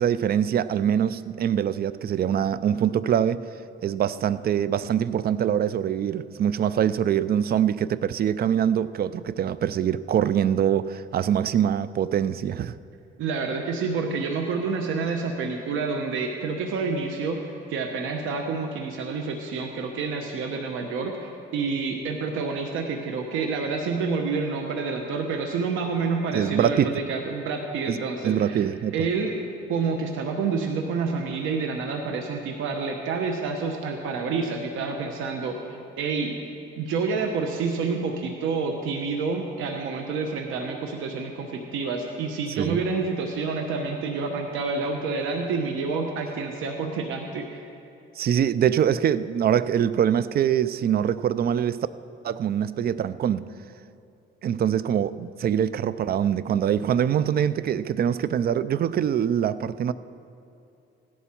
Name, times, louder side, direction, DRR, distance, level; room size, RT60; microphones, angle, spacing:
voice 1, 0.0-3.4 3.8-12.8 26.3-26.9 27.9-28.9 42.6-42.8 48.2-51.9 52.2-53.5 54.4-59.9, right 9 dB, 50° right, 0.5 m, -24 dB
voice 2, 13.2-28.7 28.9-29.4 29.7-36.4 36.8-47.5, right 4 dB, 90° right, 1.1 m, -28 dB
16.0 x 11.0 x 4.5 m
cardioid pair, 90°, 20 cm